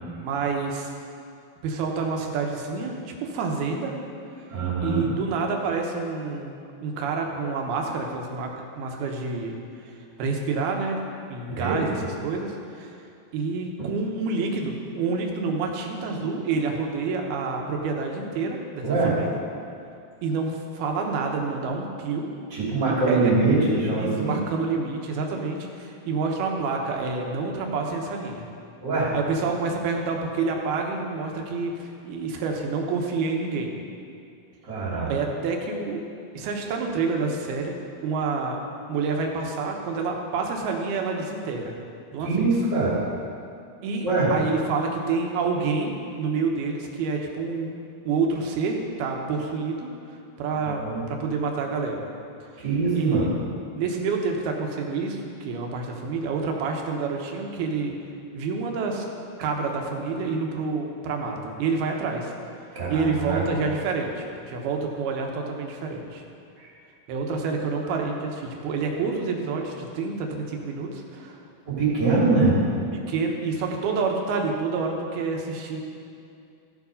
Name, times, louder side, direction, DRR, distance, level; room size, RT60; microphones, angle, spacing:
voice 1, 0.2-0.9 1.6-3.9 4.8-6.5 6.8-8.5 8.8-9.6 9.8-11.0 11.3-13.0 13.3-19.4 20.2-22.3 23.1-23.3 24.0-28.5 29.1-33.7 35.1-36.0 36.3-37.8 38.0-38.6 38.9-41.7 42.1-42.5 43.8-47.7 48.1-52.0 52.9-53.3 53.7-57.9 58.3-59.1 59.4-62.3 62.9-66.2 67.1-71.4 72.9-75.8, right 4 dB, 75° right, 1 dB, 2.9 m, -28 dB
voice 2, 4.5-5.1 11.6-12.0 13.8-13.9 18.8-19.1 22.5-24.4 28.8-29.1 34.6-35.1 42.2-43.0 44.0-44.3 50.6-51.0 52.6-53.3 62.7-63.4 66.6-66.7 67.9-68.0 71.6-72.5, right 3 dB, 30° right, -7 dB, 3.2 m, -23 dB
15.0 x 7.5 x 5.4 m, 2.5 s
omnidirectional pair, 4.7 m